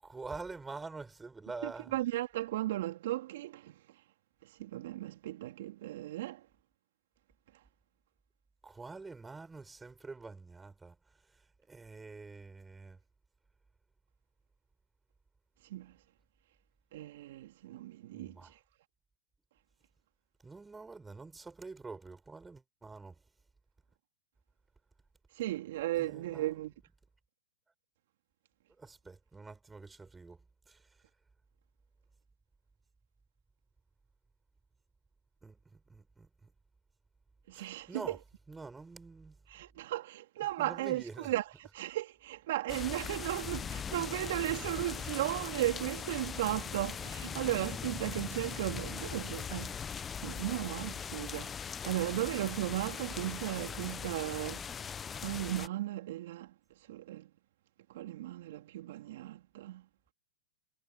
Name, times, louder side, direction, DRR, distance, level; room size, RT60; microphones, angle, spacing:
voice 1, 0.0-1.9 8.6-10.9 11.7-13.0 18.1-18.5 20.4-23.1 25.9-26.5 28.8-30.4 30.7-30.8 35.4-35.6 35.9-36.3 37.6-38.2 38.5-39.4 40.6-41.3, right 3 dB, 10° right, 6.1 m, -46 dB
voice 2, 1.6-3.7 4.6-6.4 15.7-15.9 16.9-18.3 25.4-26.7 37.5-38.2 39.5-49.8 50.2-51.5 51.8-54.6 55.1-56.5 56.9-57.2 57.9-59.8, right 15 dB, 60° right, 3.1 m, -36 dB
sound 1, 42.7-55.7, left 7 dB, 20° left, 1.0 m, -40 dB
hypercardioid pair, 115°, 0 cm